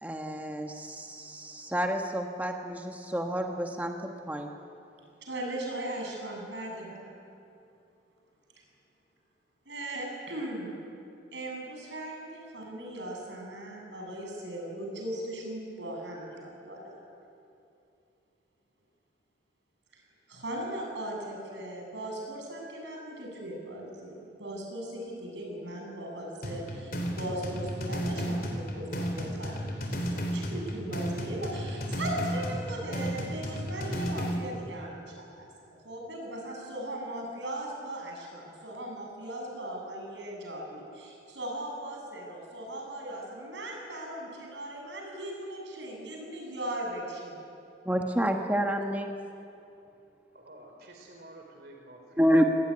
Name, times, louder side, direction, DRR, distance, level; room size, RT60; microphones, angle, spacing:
voice 1, 0.0-4.5 47.8-49.1 52.2-52.4, equal, 10° right, 3 dB, 1.4 m, -29 dB
voice 2, 5.2-7.0 9.7-10.7 11.3-17.0 19.9-20.0 20.3-47.4, right 1 dB, 85° right, 0 dB, 7.6 m, -38 dB
sound 1, 26.4-34.4, equal, 50° left, 4.2 m, -33 dB
voice 3, 50.3-52.5, right 1 dB, 60° right, 2 dB, 3.3 m, -50 dB
27.5 x 20.0 x 9.8 m, 2.7 s
head